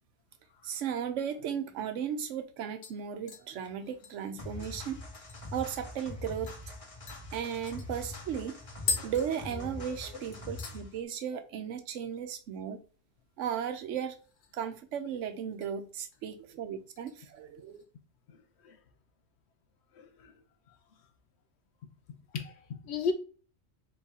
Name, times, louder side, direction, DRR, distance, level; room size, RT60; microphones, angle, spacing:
voice 1, 0.6-5.0 5.5-6.5 7.3-12.8 13.4-14.2 14.5-17.8, right 8 dB, 75° right, 1.0 m, -36 dB
sound 1, 1.7-1.8 2.2-2.5 2.8-5.7 6.0-6.1 6.5-6.6 7.1-10.1 10.3-10.8 11.2-11.6 11.8-11.9 14.0-14.7 15.0-15.7 16.1-16.4 17.0-17.9 18.2-18.3, left 5 dB, 85° left, 1.2 m, -41 dB
sound 2, 4.4-11.0, left 2 dB, 30° left, 0.9 m, -43 dB
voice 2, 20.0-20.3 22.3-23.1, left 5 dB, 65° left, 0.8 m, -34 dB
4.1 x 3.1 x 3.6 m
omnidirectional pair, 1.3 m